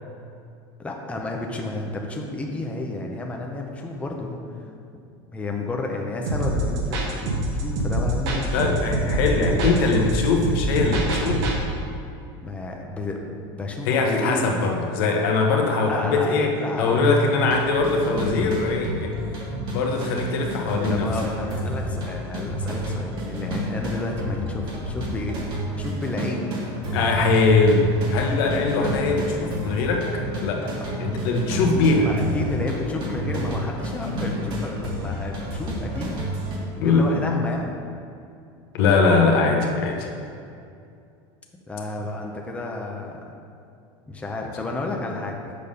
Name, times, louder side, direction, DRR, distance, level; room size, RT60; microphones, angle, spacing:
voice 1, 0.8-4.7 5.3-8.8 9.5-9.7 12.4-14.5 15.8-17.1 20.9-25.4 25.7-26.6 32.0-36.2 36.8-37.8 41.5-43.2 44.1-45.6, left 2 dB, 10° left, 0 dB, 0.7 m, -31 dB
sound 1, 6.3-11.6, right 1 dB, 75° right, 1.5 m, -25 dB
voice 2, 8.5-11.5 13.9-16.5 16.8-19.1 19.7-21.1 26.9-30.1 30.4-30.7 31.0-32.1 36.8-37.1 38.7-40.1, left 3 dB, 75° left, 1 dB, 1.1 m, -21 dB
sound 2, 17.5-36.6, equal, 40° right, 1.7 m, -30 dB
6.7 x 5.4 x 5.3 m, 2.5 s
supercardioid pair, 140°, 12 cm